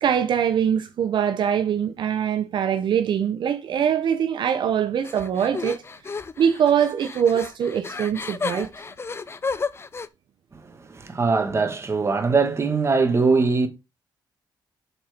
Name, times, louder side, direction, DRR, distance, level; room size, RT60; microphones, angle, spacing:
voice 1, 0.0-5.8 6.4-8.7, right 8 dB, 75° right, 0.7 m, -23 dB
sound 1, 5.0-10.1, left 4 dB, 30° left, 0.6 m, -32 dB
voice 2, 10.5-13.7, right 4 dB, 35° right, 1.7 m, -22 dB
7.4 x 4.3 x 5.0 m
cardioid pair, 90°, 8 cm